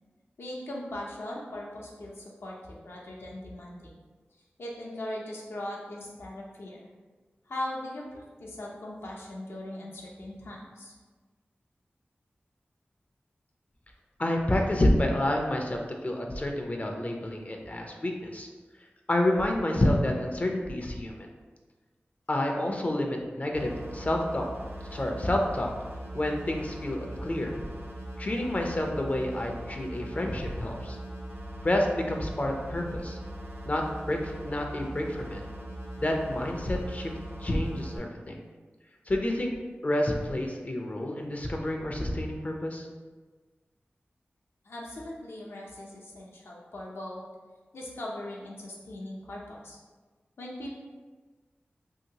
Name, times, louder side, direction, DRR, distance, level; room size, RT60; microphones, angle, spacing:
voice 1, 0.4-3.9 4.6-6.9 7.5-10.9 44.6-47.2 47.7-49.8 50.4-50.8, left 1 dB, 80° left, -3 dB, 0.6 m, -39 dB
voice 2, 14.2-18.5 19.1-21.3 22.3-24.4 24.9-25.7 26.1-27.6 28.2-31.0 31.6-33.2 33.6-33.8 34.1-35.4 36.0-37.1 37.4-38.4 39.1-39.5 39.8-42.9, left 1 dB, 40° left, 2 dB, 0.4 m, -29 dB
sound 1, 23.5-38.0, right 1 dB, 80° right, 0.8 m, -40 dB
2.8 x 2.8 x 2.8 m, 1.3 s
wide cardioid pair, 50°, 4 cm